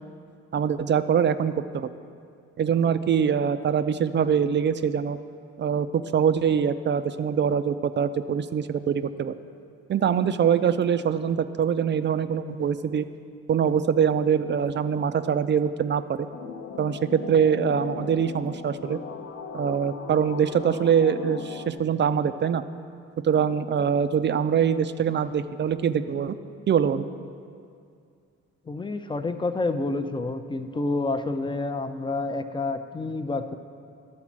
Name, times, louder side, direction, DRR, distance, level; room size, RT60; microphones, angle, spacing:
voice 1, 0.5-1.9 2.6-5.2 5.6-9.3 9.9-13.1 13.5-16.3 16.8-19.0 19.5-22.6 23.2-26.4 26.7-27.0, right 7 dB, 40° right, 12 dB, 0.4 m, -23 dB
sound 1, 16.3-21.7, left 5 dB, 45° left, 0.7 m, -38 dB
voice 2, 28.7-33.5, left 3 dB, 15° left, 9 dB, 0.5 m, -28 dB
12.0 x 4.1 x 7.3 m, 2.3 s
cardioid pair, 90°, 30 cm